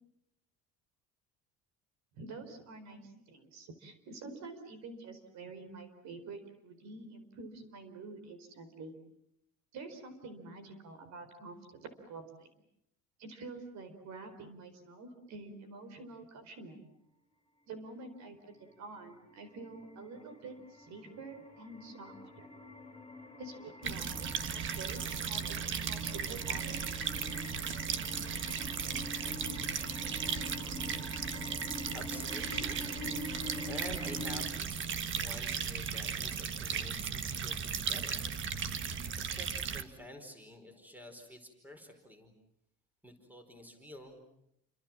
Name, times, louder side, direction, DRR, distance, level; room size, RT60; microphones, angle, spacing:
voice 1, 2.1-8.9 9.7-12.5 13.2-16.8 17.7-22.5 23.4-27.0 27.7-27.8 28.2-28.5, right 3 dB, 55° right, 9 dB, 4.6 m, -48 dB
sound 1, 18.2-34.4, left 2 dB, 10° left, 4.6 m, -46 dB
sound 2, 23.8-39.8, right 7 dB, 35° right, 1.5 m, -36 dB
voice 2, 31.2-38.3 39.2-42.3 43.0-44.2, equal, 5° right, 6 dB, 4.8 m, -50 dB
29.5 x 26.0 x 7.4 m, 0.76 s
cardioid pair, 160°, 32 cm